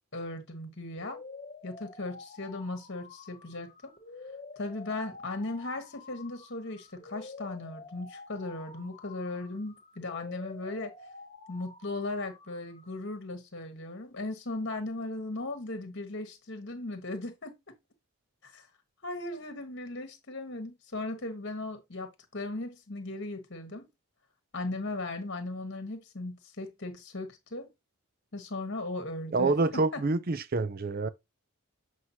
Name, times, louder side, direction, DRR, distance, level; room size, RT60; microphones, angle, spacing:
voice 1, 0.1-1.2 1.6-3.9 4.6-10.9 11.5-17.5 18.4-18.7 19.0-23.9 24.5-27.7 28.3-30.0, left 2 dB, 50° left, 1.3 m, -37 dB
sound 1, 1.0-13.0, left 3 dB, 30° left, 1.0 m, -49 dB
voice 2, 29.3-31.1, right 3 dB, 40° right, 0.5 m, -27 dB
7.8 x 4.7 x 2.8 m
head